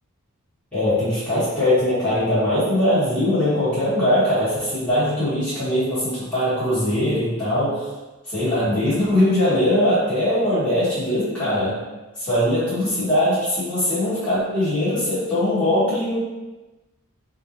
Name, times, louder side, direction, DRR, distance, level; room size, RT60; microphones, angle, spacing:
voice 1, 0.7-7.9 8.3-11.8 12.2-16.2, left 1 dB, 5° left, -14 dB, 1.4 m, -21 dB
4.0 x 2.5 x 2.9 m, 1.1 s
head